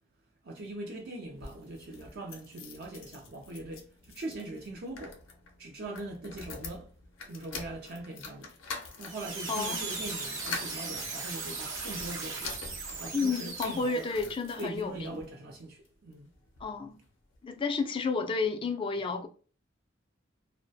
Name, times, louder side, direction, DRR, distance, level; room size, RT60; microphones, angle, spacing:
voice 1, 0.4-5.2 5.6-6.9 7.2-8.5 9.0-14.1 14.6-16.3, right 2 dB, 55° right, 0.4 m, -41 dB
sound 1, 1.2-15.3 15.9-16.7 17.0-17.1 17.3-17.4, left 4 dB, 70° left, 0.6 m, -45 dB
sound 2, 9.0-14.2, right 3 dB, 80° right, 0.7 m, -38 dB
voice 2, 9.5-9.8 13.1-15.1 16.6-17.0 17.4-19.3, left 4 dB, 25° left, 0.3 m, -31 dB
2.2 x 2.1 x 2.6 m
head